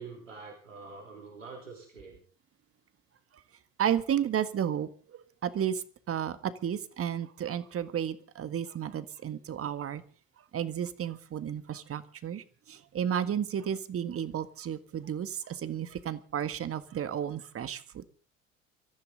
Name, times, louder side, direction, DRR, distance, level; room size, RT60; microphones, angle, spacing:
voice 1, 0.0-2.2, right 4 dB, 90° right, 3.5 m, -45 dB
voice 2, 3.8-10.0 10.5-18.0, right 9 dB, 35° right, 1.7 m, -33 dB
24.5 x 14.5 x 3.9 m
figure-of-eight pair, 60°, 37 cm